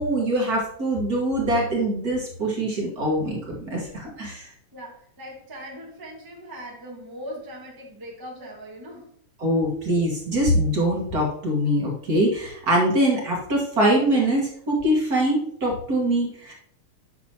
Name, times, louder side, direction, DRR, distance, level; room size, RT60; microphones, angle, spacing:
voice 1, 0.0-4.5 9.4-16.5, right 1 dB, 40° right, -2 dB, 1.6 m, -23 dB
voice 2, 4.7-9.1, equal, 20° right, -3 dB, 0.6 m, -40 dB
9.2 x 6.0 x 2.9 m, 0.65 s
omnidirectional pair, 3.4 m